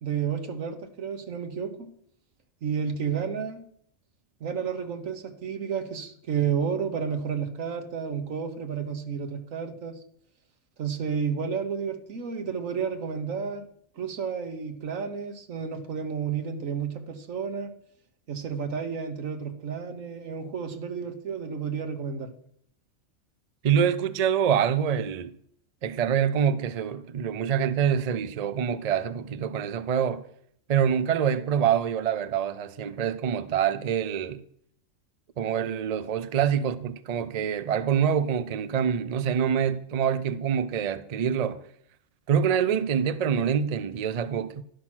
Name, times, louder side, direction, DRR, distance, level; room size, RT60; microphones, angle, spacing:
voice 1, 0.0-1.9 2.6-3.6 4.4-10.0 10.8-13.6 14.0-17.7 18.3-22.3, right 6 dB, 80° right, 1.6 m, -31 dB
voice 2, 23.6-25.3 25.8-30.2 30.7-34.4 35.4-41.6 42.3-44.6, right 8 dB, 55° right, 0.4 m, -25 dB
11.5 x 5.9 x 6.1 m
omnidirectional pair, 1.4 m